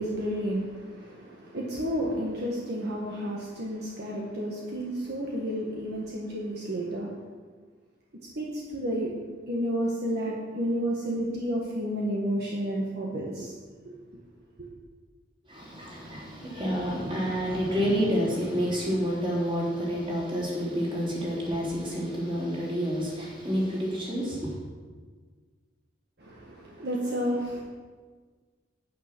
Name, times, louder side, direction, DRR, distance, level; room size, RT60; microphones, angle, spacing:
voice 1, 0.0-7.1 8.3-9.1 9.5-13.5 13.8-14.0 14.6-14.7 26.2-27.6, equal, 60° right, -3 dB, 1.6 m, -31 dB
voice 2, 15.5-24.5, equal, 30° right, -5 dB, 3.5 m, -29 dB
9.3 x 9.1 x 6.1 m, 1.5 s
head